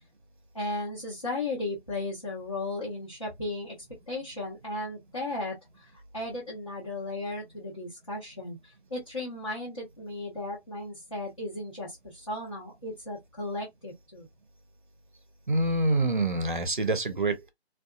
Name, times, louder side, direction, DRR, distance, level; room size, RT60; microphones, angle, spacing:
voice 1, 0.5-3.8 4.1-14.3, left 2 dB, 30° left, 0.9 m, -35 dB
voice 2, 15.5-17.5, right 2 dB, 50° right, 0.6 m, -26 dB
2.5 x 2.3 x 2.3 m
figure-of-eight pair, 170°, 32 cm